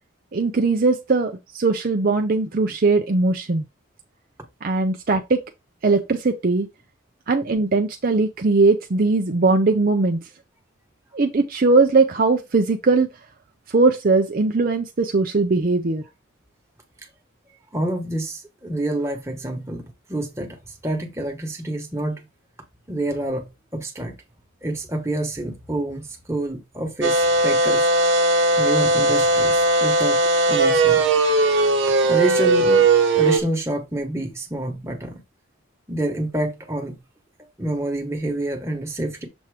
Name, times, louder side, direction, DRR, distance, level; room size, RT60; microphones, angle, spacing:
voice 1, 0.3-3.6 4.6-5.4 5.8-6.7 7.3-10.2 11.1-13.1 13.7-16.0, right 3 dB, 45° right, 0.5 m, -20 dB
voice 2, 17.7-22.2 22.9-24.1 24.6-27.9 28.6-30.2 30.5-31.1 32.0-32.9 33.1-35.2 35.9-36.9 37.6-39.3, right 1 dB, 15° right, 1.3 m, -27 dB
sound 1, 27.0-33.4, right 2 dB, 65° right, 1.0 m, -18 dB
7.1 x 2.9 x 4.8 m
head